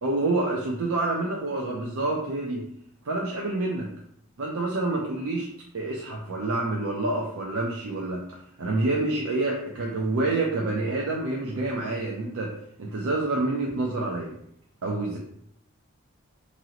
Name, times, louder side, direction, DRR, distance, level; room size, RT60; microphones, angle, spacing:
voice 1, 0.0-2.6 3.0-3.9 4.4-8.3 8.6-14.3 14.8-15.2, right 2 dB, 90° right, -2 dB, 0.5 m, -28 dB
2.9 x 2.6 x 2.8 m, 0.69 s
head